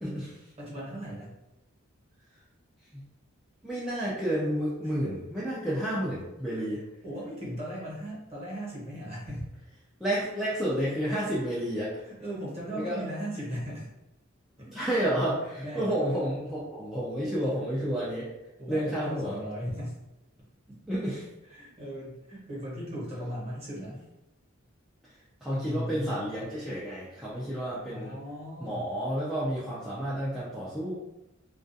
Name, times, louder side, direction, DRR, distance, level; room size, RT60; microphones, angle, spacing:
voice 1, 0.0-0.5 2.9-3.0 3.6-6.8 10.0-12.1 12.7-13.1 14.7-18.3 18.7-19.4 20.9-21.3 23.8-23.9 25.0-28.2 28.6-30.9, equal, ahead, -10 dB, 0.4 m, -31 dB
voice 2, 0.6-1.3 7.0-9.5 12.0-13.9 15.6-15.9 18.6-20.0 21.5-24.0 25.5-26.1 27.9-28.9, equal, 30° right, -6 dB, 0.9 m, -37 dB
2.3 x 2.3 x 2.6 m, 0.94 s
head